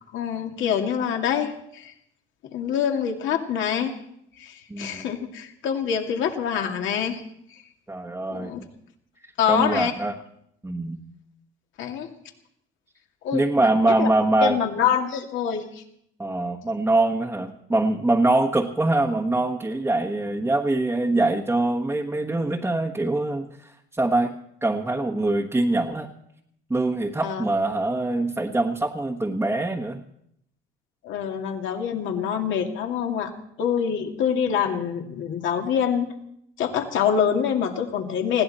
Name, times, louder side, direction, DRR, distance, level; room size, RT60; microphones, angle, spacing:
voice 1, 0.1-1.9 2.5-3.9 4.4-7.2 7.5-7.6 8.3-8.6 9.4-9.9 11.8-12.1 13.2-14.1 14.4-15.8 27.2-27.4 31.0-33.3 33.6-36.1 36.6-38.4, left 8 dB, 65° left, 3 dB, 2.4 m, -25 dB
voice 2, 4.7-5.1 7.9-8.7 9.5-10.1 10.6-11.0 13.3-14.6 16.2-26.1 26.7-30.0, right 2 dB, 10° right, 0 dB, 1.4 m, -24 dB
20.5 x 16.0 x 4.3 m, 0.73 s
cardioid pair, 105°, 21 cm